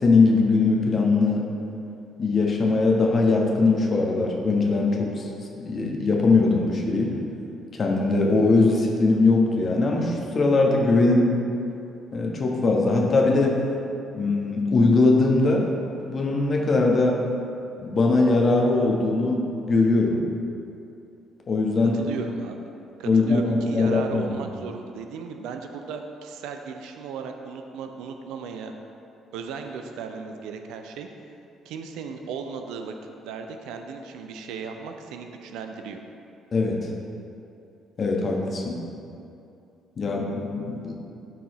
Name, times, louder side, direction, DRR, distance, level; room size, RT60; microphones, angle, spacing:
voice 1, 0.0-1.4 2.2-5.3 5.6-7.1 7.8-11.3 12.1-13.6 14.1-15.6 16.1-17.2 17.8-20.2 21.5-22.0 23.0-24.4 36.5-36.9 38.0-38.8 40.0-40.9, left 3 dB, 40° left, -1 dB, 1.2 m, -21 dB
voice 2, 21.8-22.6 23.0-28.7 29.3-31.1 31.6-32.9 33.2-36.0, right 6 dB, 65° right, 5 dB, 0.5 m, -36 dB
12.5 x 4.5 x 3.1 m, 2.6 s
figure-of-eight pair, 45°, 0 cm